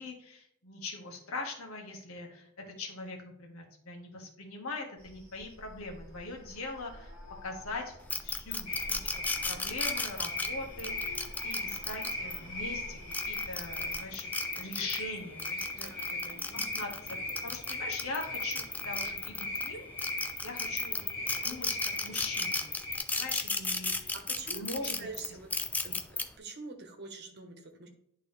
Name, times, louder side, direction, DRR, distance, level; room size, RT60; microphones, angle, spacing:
voice 1, 0.0-7.1 7.4-8.0 8.2-9.0 9.5-13.0 13.3-15.9 16.5-17.2 17.4-21.1 21.4-22.6 23.1-24.1 24.5-25.1 25.9-26.0, left 3 dB, 85° left, 1 dB, 1.7 m, -41 dB
sound 1, 5.0-14.0, equal, 10° right, 2.2 m, -50 dB
sound 2, 8.1-12.4 13.0-15.0 15.4-19.7 20.0-26.2, left 3 dB, 10° left, 0.4 m, -34 dB
sound 3, 8.7-23.0, left 2 dB, 45° left, 2.5 m, -38 dB
voice 2, 15.7-16.6 23.1-23.3 24.3-24.6 25.0-25.5 26.4-27.9, right 3 dB, 50° right, 4 dB, 1.2 m, -45 dB
10.5 x 3.7 x 3.4 m, 0.72 s
head